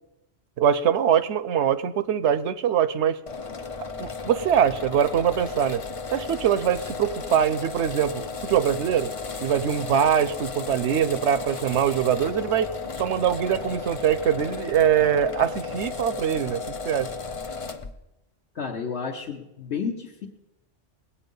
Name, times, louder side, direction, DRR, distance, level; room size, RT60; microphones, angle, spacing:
voice 1, 0.6-3.2 4.0-5.8 6.1-9.1 9.4-12.7 13.0-17.1, right 9 dB, 70° right, 14 dB, 0.9 m, -23 dB
sound 1, 3.3-17.9, left 4 dB, 35° left, 0.6 m, -34 dB
voice 2, 18.5-20.3, left 6 dB, 65° left, -1 dB, 1.2 m, -31 dB
20.0 x 8.5 x 5.4 m, 0.93 s
omnidirectional pair, 1.2 m